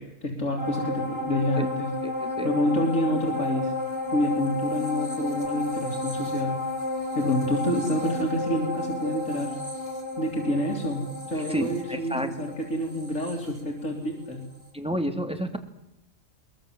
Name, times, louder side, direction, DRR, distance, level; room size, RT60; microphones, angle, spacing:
voice 1, 0.0-1.9 2.4-3.7 4.1-6.6 7.2-9.6 10.2-14.4, left 1 dB, 85° left, 1 dB, 3.6 m, -28 dB
sound 1, 0.6-14.3 14.7-14.8, left 2 dB, 50° right, 5.5 m, -32 dB
voice 2, 2.0-2.5 11.5-12.3 14.7-15.6, equal, 5° right, 6 dB, 2.7 m, -30 dB
23.0 x 22.0 x 7.7 m, 0.88 s
omnidirectional pair, 1.3 m